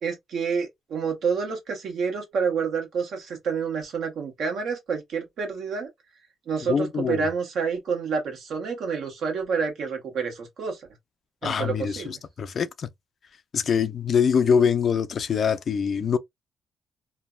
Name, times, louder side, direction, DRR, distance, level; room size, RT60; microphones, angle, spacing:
voice 1, 0.0-5.9 6.5-10.8 11.4-12.2, right 5 dB, 70° right, 1.3 m, -28 dB
voice 2, 6.7-7.2 11.4-12.9 13.5-16.2, left 7 dB, 55° left, 0.4 m, -24 dB
3.2 x 2.1 x 2.3 m
cardioid pair, 90°, 0 cm